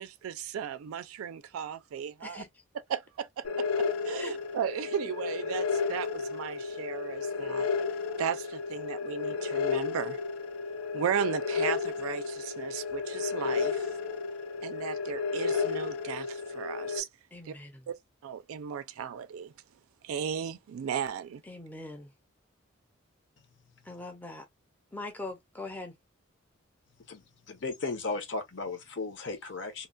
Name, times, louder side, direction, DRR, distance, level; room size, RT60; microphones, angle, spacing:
voice 1, 0.0-2.4 2.9-7.7 8.2-10.2 10.9-13.9 14.6-17.1 17.4-17.6 17.9-18.0 18.2-19.5 20.0-21.4, right 8 dB, 85° right, 0.3 m, -36 dB
sound 1, 3.4-17.0, left 5 dB, 85° left, 0.4 m, -32 dB
voice 2, 17.3-17.8 21.5-22.1 23.8-24.4 24.9-25.9, left 2 dB, 10° left, 0.5 m, -41 dB
voice 3, 27.1-29.9, left 3 dB, 55° left, 0.8 m, -36 dB
2.9 x 2.2 x 2.4 m
head